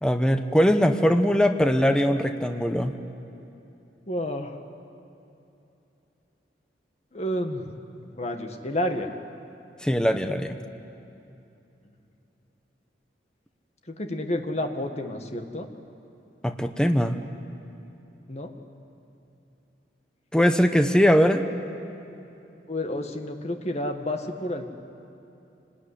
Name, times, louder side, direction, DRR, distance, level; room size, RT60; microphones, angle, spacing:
voice 1, 0.0-3.0 9.8-10.6 16.4-17.2 20.3-21.5, equal, 5° left, 6 dB, 0.9 m, -21 dB
voice 2, 4.1-4.6 7.1-7.7 8.0-9.1 13.9-15.7 18.3-18.5 22.7-24.7, left 1 dB, 40° left, 5 dB, 1.7 m, -30 dB
26.5 x 19.5 x 9.9 m, 2.8 s
head